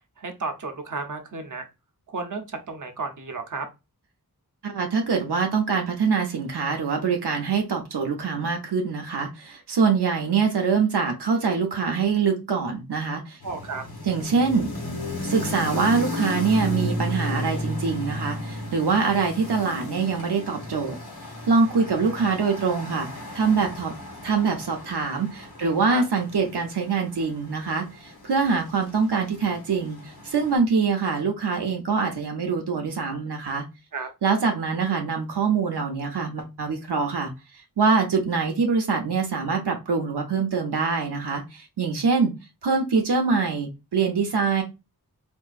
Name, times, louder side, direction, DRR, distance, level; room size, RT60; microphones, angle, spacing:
voice 1, 0.2-1.7 2.1-3.7 13.4-13.8 25.6-26.0 33.9-34.1, right 4 dB, 50° right, 5 dB, 0.7 m, -33 dB
voice 2, 4.6-13.4 14.0-14.7 15.2-21.0 21.5-23.1 23.3-23.9 24.2-30.0 30.2-33.6 34.2-37.3 37.8-42.3 42.6-44.6, right 5 dB, 90° right, 3 dB, 0.7 m, -24 dB
sound 1, 13.4-30.6, left 1 dB, 75° left, 1.3 m, -34 dB
3.6 x 2.6 x 2.3 m, 0.25 s
wide cardioid pair, 40°, 39 cm